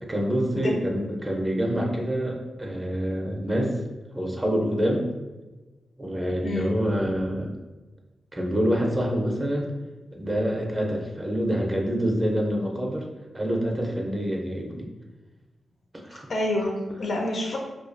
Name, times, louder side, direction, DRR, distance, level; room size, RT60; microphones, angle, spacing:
voice 1, 0.0-3.8 4.1-5.1 6.0-7.5 8.3-9.7 10.1-13.0 13.3-14.9 16.0-16.3, equal, 20° right, 0 dB, 0.4 m, -26 dB
voice 2, 16.3-17.6, left 1 dB, 65° left, 0 dB, 0.4 m, -27 dB
2.3 x 2.2 x 2.5 m, 1.2 s
cardioid pair, 85°, 0 cm